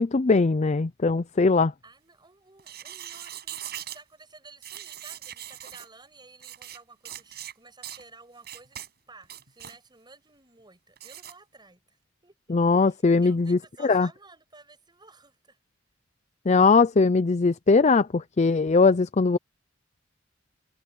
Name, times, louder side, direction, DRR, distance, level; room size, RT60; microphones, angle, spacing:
voice 1, 0.0-1.7 12.5-14.1 16.5-19.4, left 4 dB, 35° left, 0.5 m, -20 dB
voice 2, 1.8-13.0 13.2-15.6, right 3 dB, 25° right, 7.7 m, -53 dB
sound 1, 2.6-4.0 4.6-5.9 6.4-6.8 7.1-7.5 7.8-8.0 8.4-8.9 9.2-9.8 11.0-11.3, right 11 dB, 55° right, 6.6 m, -40 dB
head